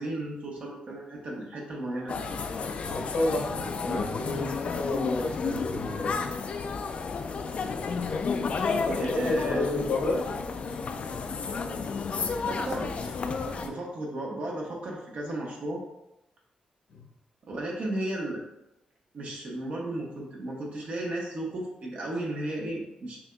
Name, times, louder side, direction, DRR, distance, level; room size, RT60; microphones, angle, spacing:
voice 1, 0.0-2.2 8.9-9.7 12.4-13.1 13.6-15.8 17.4-18.4 19.1-23.2, right 1 dB, 60° right, -2 dB, 1.1 m, -34 dB
sound 1, 2.1-13.7, left 4 dB, 50° left, 0.4 m, -32 dB
voice 2, 2.8-6.2 8.7-10.2 16.9-17.0, left 2 dB, 80° left, -1 dB, 0.9 m, -31 dB
6.0 x 2.6 x 2.3 m, 0.88 s
cardioid pair, 95°, 3 cm